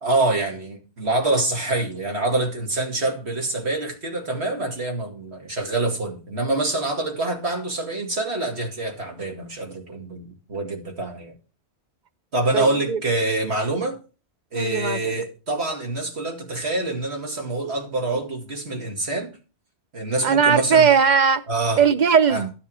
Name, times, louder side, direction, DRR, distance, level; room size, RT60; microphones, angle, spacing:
voice 1, 0.0-11.4 12.3-14.0 14.5-19.3 19.9-20.9 21.5-21.8 22.3-22.4, right 2 dB, 75° right, 2.5 m, -26 dB
voice 2, 12.5-13.0 14.5-15.2 20.2-21.4 21.8-22.5, right 6 dB, 45° right, 0.8 m, -19 dB
12.0 x 7.1 x 4.9 m
omnidirectional pair, 1.1 m